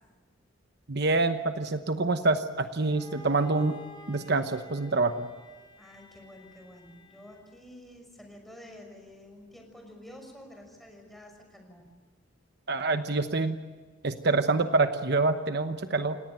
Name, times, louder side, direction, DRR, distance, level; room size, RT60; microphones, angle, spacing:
voice 1, 0.9-3.8 4.1-5.3 12.7-13.6 14.0-16.2, right 3 dB, 60° right, 8 dB, 1.0 m, -26 dB
Bowed string instrument, 2.8-7.6, left 2 dB, 25° left, 4.1 m, -51 dB
voice 2, 5.8-11.9, left 1 dB, ahead, 2 dB, 5.9 m, -49 dB
29.0 x 18.5 x 9.1 m, 1.4 s
head